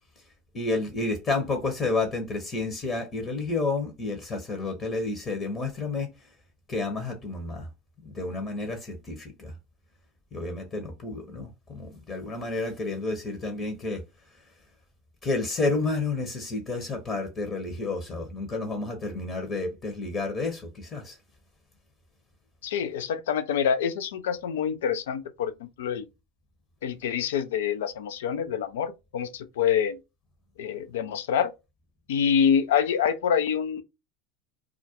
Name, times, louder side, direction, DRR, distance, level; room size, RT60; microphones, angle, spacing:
voice 1, 0.5-6.3 6.7-7.7 8.0-9.5 10.3-14.0 15.2-21.2, left 3 dB, 30° left, 0.7 m, -30 dB
voice 2, 22.6-26.1 26.8-30.0 30.6-31.5 32.1-33.8, left 8 dB, 70° left, 0.3 m, -26 dB
2.4 x 2.1 x 2.8 m
hypercardioid pair, 80°, 0 cm